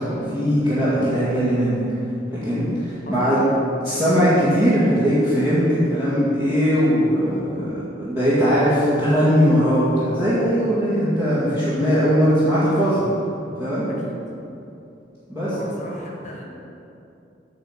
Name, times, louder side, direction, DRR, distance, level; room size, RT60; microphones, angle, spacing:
voice 1, 0.0-1.8 2.3-3.4 3.8-13.1 13.6-13.9 15.3-15.5, equal, 20° right, -13 dB, 2.1 m, -20 dB
voice 2, 3.0-3.5 13.9-14.1 15.5-16.5, left 1 dB, 45° left, -1 dB, 1.5 m, -36 dB
9.7 x 4.1 x 7.3 m, 2.7 s
head